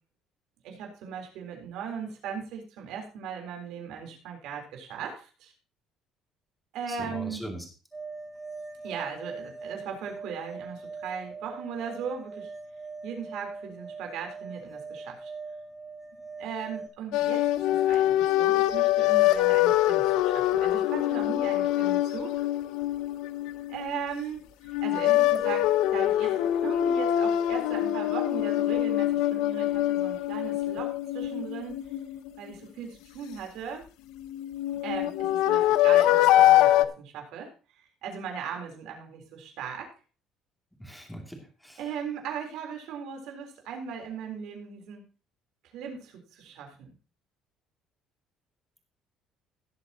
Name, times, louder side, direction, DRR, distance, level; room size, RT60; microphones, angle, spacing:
voice 1, 0.6-5.5 6.7-7.4 8.8-12.5 13.0-15.3 16.4-17.5 17.8-22.5 23.7-31.8 32.4-33.8 34.8-37.5 38.0-39.9 41.8-45.1 45.7-46.9, right 7 dB, 75° right, 2 dB, 3.9 m, -38 dB
voice 2, 6.9-7.6 40.8-41.8, equal, ahead, 1 dB, 2.6 m, -40 dB
sound 1, 7.9-16.9, right 4 dB, 15° right, 2.2 m, -42 dB
sound 2, 17.1-24.2 24.7-32.5 34.2-36.9, left 13 dB, 85° left, 0.6 m, -24 dB
17.5 x 7.9 x 3.0 m, 0.34 s
cardioid pair, 145°, 0 cm